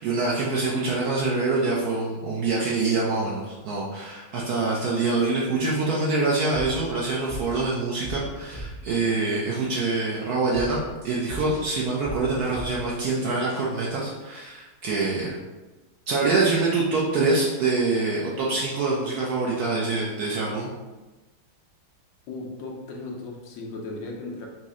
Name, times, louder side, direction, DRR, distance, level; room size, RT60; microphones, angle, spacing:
voice 1, 0.0-15.3 16.1-20.7, right 3 dB, 75° right, -4 dB, 0.8 m, -25 dB
sound 1, 6.5-9.0 9.5-9.7 10.5-13.1 13.5-13.7, right 1 dB, 35° right, 0.9 m, -38 dB
voice 2, 22.3-24.5, left 2 dB, 75° left, -1 dB, 1.3 m, -36 dB
4.2 x 2.0 x 3.5 m, 1.1 s
omnidirectional pair, 2.2 m